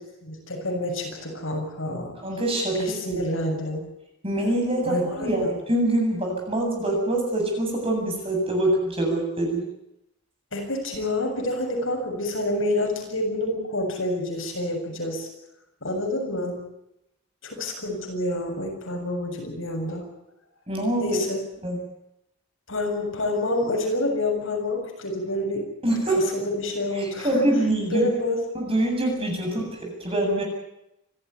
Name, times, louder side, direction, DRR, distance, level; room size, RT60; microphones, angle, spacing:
voice 1, 0.0-2.1 2.8-3.9 4.9-5.5 10.5-15.3 15.8-16.6 17.4-20.1 21.0-21.4 22.7-25.7 26.4-27.4 27.9-28.4 29.4-29.7, left 1 dB, 65° left, 2 dB, 7.4 m, -28 dB
voice 2, 2.2-3.2 4.2-9.6 20.7-21.3 21.6-21.8 25.8-26.2 26.9-28.1 28.5-30.4, right 1 dB, 25° right, 1 dB, 8.0 m, -25 dB
28.0 x 14.0 x 9.7 m, 0.85 s
head